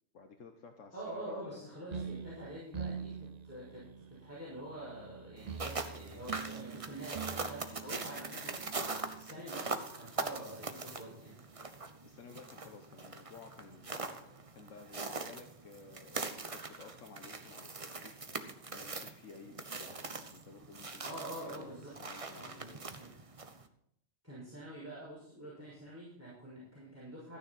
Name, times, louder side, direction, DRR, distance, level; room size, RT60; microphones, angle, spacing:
voice 1, 0.1-2.1 6.4-6.9 12.0-22.8, left 4 dB, 80° left, 5 dB, 1.4 m, -55 dB
voice 2, 0.9-8.6 9.1-11.3 21.0-21.9 22.3-23.1 24.2-27.4, right 1 dB, 10° right, -8 dB, 5.7 m, -46 dB
sound 1, 1.9-9.4, right 6 dB, 45° right, 0.6 m, -45 dB
sound 2, 5.4-23.7, right 3 dB, 30° right, 1.0 m, -42 dB
14.5 x 10.0 x 4.2 m, 0.73 s
omnidirectional pair, 1.3 m